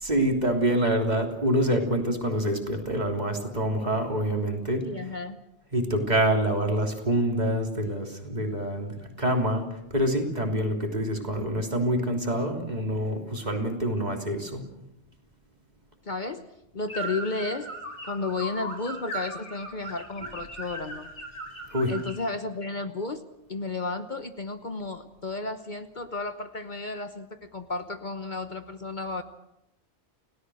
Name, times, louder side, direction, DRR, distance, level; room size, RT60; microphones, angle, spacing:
voice 1, 0.0-4.8 5.7-9.7 9.9-14.6 21.7-21.9, right 1 dB, 40° right, 2 dB, 3.4 m, -26 dB
voice 2, 4.8-5.4 16.0-16.4 16.7-17.7 18.0-21.1 21.9-23.2 23.5-29.2, left 3 dB, 45° left, 9 dB, 1.2 m, -33 dB
sound 1, 16.9-22.2, right 1 dB, 90° left, 4.7 m, -38 dB
29.5 x 17.5 x 6.4 m, 0.85 s
omnidirectional pair, 1.2 m